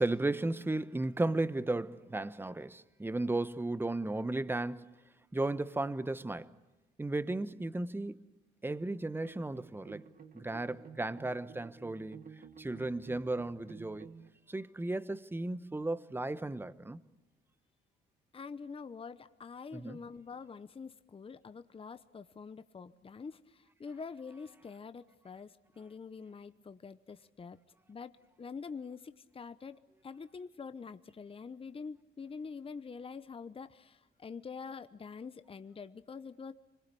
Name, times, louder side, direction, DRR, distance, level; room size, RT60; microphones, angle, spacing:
voice 1, 0.0-4.9 5.3-6.5 7.0-8.2 8.6-10.1 10.3-12.2 12.6-14.1 14.5-17.0 19.7-20.0, right 2 dB, 10° right, 1.0 m, -35 dB
sound 1, 9.2-14.3, right 6 dB, 45° right, 2.0 m, -52 dB
voice 2, 18.3-27.6 27.9-28.1 28.4-36.5, left 5 dB, 30° left, 0.9 m, -46 dB
26.0 x 21.5 x 8.3 m
cardioid pair, 90°, 20 cm